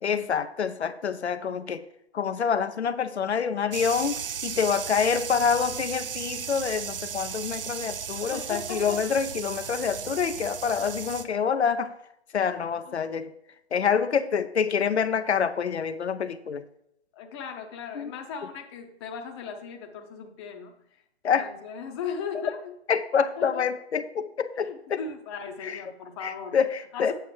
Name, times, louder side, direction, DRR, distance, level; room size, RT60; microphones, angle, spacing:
voice 1, 0.0-1.8 2.1-11.9 12.3-13.3 13.7-16.6 17.9-18.1 21.2-21.5 22.9-25.0 25.6-25.8 26.2-27.1, left 6 dB, 80° left, 10 dB, 0.6 m, -27 dB
sound 1, 3.7-11.3, right 7 dB, 60° right, 0.6 m, -35 dB
voice 2, 8.1-9.0 12.9-13.0 17.1-20.7 21.4-22.7 23.4-23.7 24.6-26.6 26.9-27.1, left 6 dB, 25° left, 4 dB, 0.7 m, -37 dB
7.7 x 6.9 x 3.2 m, 0.77 s
figure-of-eight pair, 130°, 33 cm